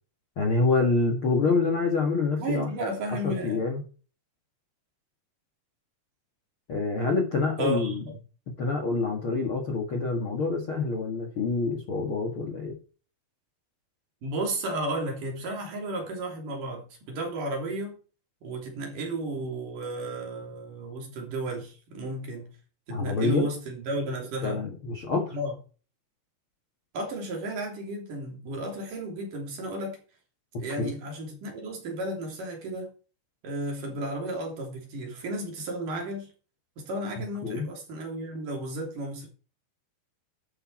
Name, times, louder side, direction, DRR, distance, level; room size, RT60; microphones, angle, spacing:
voice 1, 0.3-2.7 3.2-3.8 6.7-8.0 8.6-12.8 22.9-23.5 24.4-25.4 30.8-30.9 37.4-37.7, left 3 dB, 55° left, 1.5 m, -26 dB
voice 2, 2.4-3.6 7.6-8.0 14.2-18.0 18.4-22.5 22.9-24.7 25.3-25.5 26.9-30.0 30.6-32.9 33.4-36.3 36.8-39.3, right 1 dB, 50° right, 4.4 m, -33 dB
11.5 x 7.5 x 4.4 m
omnidirectional pair, 5.1 m